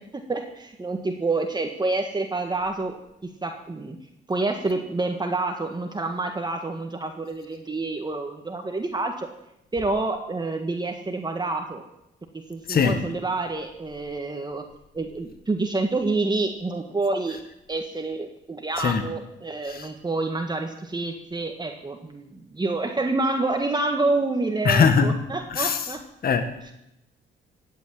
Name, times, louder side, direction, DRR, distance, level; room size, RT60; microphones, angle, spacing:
voice 1, 0.3-2.9 3.2-4.0 4.3-9.3 9.7-11.8 12.5-14.6 14.9-17.4 17.7-26.0, right 2 dB, 20° right, 1.7 m, -28 dB
voice 2, 12.7-13.1 18.8-19.1 19.6-19.9 24.6-25.9 26.2-26.7, left 6 dB, 50° left, 1.5 m, -22 dB
16.5 x 8.5 x 9.8 m
cardioid pair, 90°, 20 cm